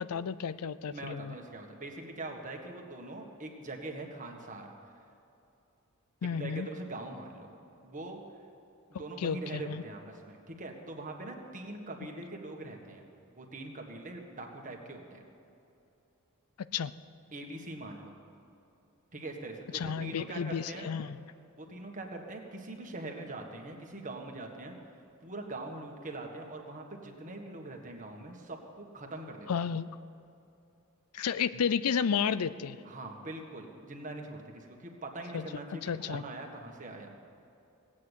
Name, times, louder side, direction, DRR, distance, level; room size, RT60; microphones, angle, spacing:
voice 1, 0.0-1.4 6.2-6.7 9.2-9.8 16.6-16.9 19.7-21.2 29.5-29.9 31.1-32.8 35.3-35.4 35.8-36.2, left 7 dB, 80° left, 15 dB, 0.5 m, -32 dB
voice 2, 0.9-4.7 6.4-7.5 7.8-8.2 8.9-13.0 13.4-15.2 17.3-18.1 19.1-20.9 21.6-24.7 25.2-29.5 32.8-37.1, right 2 dB, 35° right, 2 dB, 1.6 m, -42 dB
18.0 x 8.7 x 8.2 m, 2.8 s
head